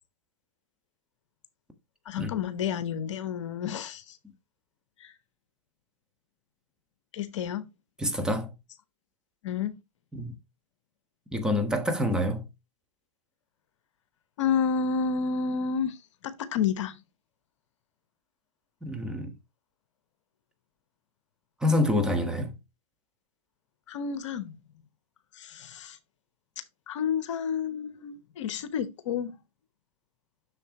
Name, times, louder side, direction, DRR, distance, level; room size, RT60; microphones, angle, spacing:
voice 1, 2.0-4.2 5.0-5.1 7.1-7.7 9.4-9.8 14.4-17.0 23.9-24.6 25.3-26.0 26.9-29.4, left 6 dB, 60° left, 1.0 m, -30 dB
voice 2, 8.0-8.5 10.1-10.3 11.3-12.4 18.8-19.3 21.6-22.5, left 1 dB, 5° right, 1.4 m, -27 dB
7.0 x 6.6 x 3.0 m
hypercardioid pair, 115°, 18 cm